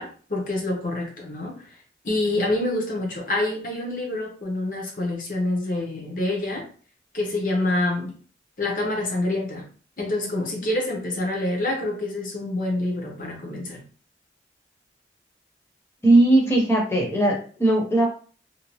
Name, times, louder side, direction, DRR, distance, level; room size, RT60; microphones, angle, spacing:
voice 1, 0.0-1.6 2.0-6.7 7.1-8.1 8.6-9.7 10.0-13.8, left 2 dB, 50° left, 0 dB, 0.8 m, -26 dB
voice 2, 16.0-18.1, right 2 dB, 15° left, -1 dB, 0.7 m, -18 dB
2.7 x 2.1 x 3.0 m, 0.40 s
head